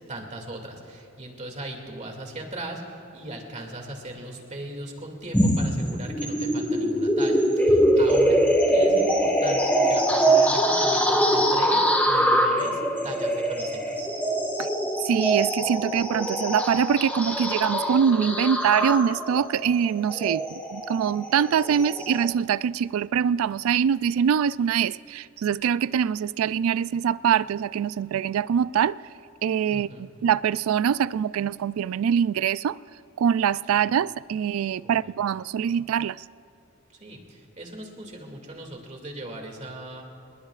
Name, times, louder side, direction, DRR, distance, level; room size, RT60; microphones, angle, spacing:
voice 1, 0.1-14.1 29.7-30.1 33.7-33.9 34.8-35.1 37.0-40.0, right 1 dB, 35° right, 2.4 m, -38 dB
sound 1, 5.3-22.2, right 1 dB, 10° left, 1.5 m, -23 dB
voice 2, 15.1-29.0 29.4-32.8 33.2-36.2, right 8 dB, 80° right, 0.3 m, -24 dB
27.5 x 20.5 x 2.4 m
head